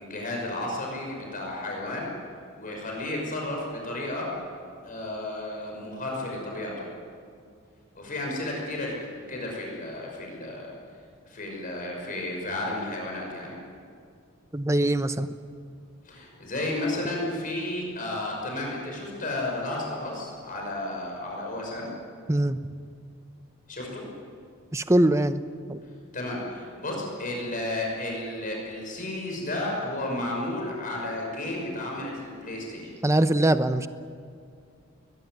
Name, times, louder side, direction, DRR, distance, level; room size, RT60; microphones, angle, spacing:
voice 1, 0.0-2.1 2.6-4.3 4.8-6.9 7.9-10.7 11.3-13.6 16.0-21.9 23.7-24.1 26.1-32.9, left 1 dB, 40° left, -1 dB, 6.1 m, -32 dB
voice 2, 14.5-15.3 22.3-22.6 24.7-25.8 33.0-33.9, right 1 dB, 15° right, 11 dB, 0.8 m, -23 dB
21.5 x 20.5 x 9.5 m, 2.2 s
head